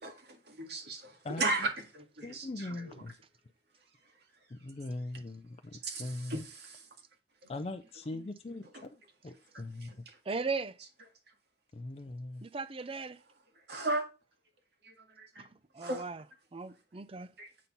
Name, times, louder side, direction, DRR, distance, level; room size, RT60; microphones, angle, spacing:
voice 1, 0.0-3.0 5.8-6.9 8.7-8.9 9.8-10.2 13.7-14.1 14.8-15.4 15.8-16.1 17.4-17.5, right 2 dB, 65° right, 1.9 m, -36 dB
voice 2, 2.2-3.1 4.5-6.4 7.5-8.9 9.2-10.0 11.7-12.4, left 2 dB, 35° left, 0.5 m, -41 dB
voice 3, 10.3-10.8 12.4-13.2 15.4-15.5 15.7-16.2 16.5-17.3, right 4 dB, 30° right, 0.5 m, -37 dB
8.4 x 4.3 x 5.3 m
head